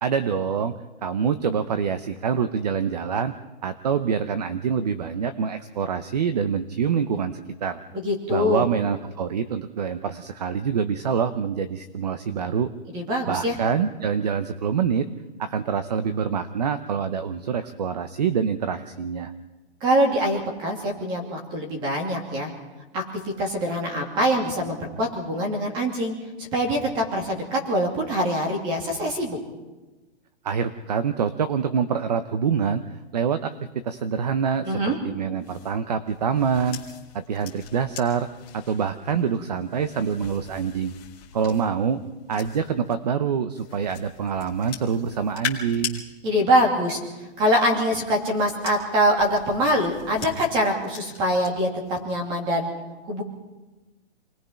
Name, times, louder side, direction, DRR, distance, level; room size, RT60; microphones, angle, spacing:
voice 1, 0.0-0.7 1.0-3.3 3.6-7.8 8.3-12.7 13.3-15.1 15.4-19.3 30.4-33.5 33.8-36.8 37.1-38.3 38.5-40.9 41.3-42.0 42.3-46.0, right 7 dB, 35° right, 11 dB, 0.8 m, -25 dB
voice 2, 8.0-8.6 12.9-13.6 19.8-22.5 22.9-23.0 23.4-26.1 26.5-29.4 34.6-35.0 46.2-47.0 47.4-52.7 53.1-53.2, equal, 15° right, 2 dB, 2.8 m, -24 dB
sound 1, 35.4-43.0 43.5-46.0 47.2-51.5 51.9-52.2, left 8 dB, 20° left, 2.4 m, -41 dB
27.5 x 20.0 x 5.8 m, 1.1 s
hypercardioid pair, 175°, 33 cm